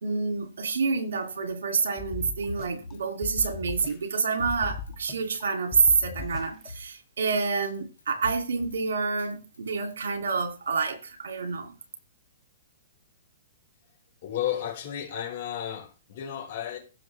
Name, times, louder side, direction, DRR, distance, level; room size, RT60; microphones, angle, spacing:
voice 1, 0.0-11.7, right 5 dB, 80° right, 2.6 m, -28 dB
sound 1, 2.0-2.9 3.2-4.2 4.5-5.4 5.7-6.7, left 4 dB, 30° left, 1.9 m, -38 dB
Drum kit, 2.5-3.0 3.4-3.5 3.8-5.0 5.3-5.5 5.8-6.9 7.3-7.4 7.6-8.8 9.2-10.1, left 2 dB, 90° left, 2.4 m, -42 dB
voice 2, 14.2-16.8, left 11 dB, 55° left, 5.1 m, -33 dB
15.5 x 6.2 x 3.3 m
hypercardioid pair, 130°, 0 cm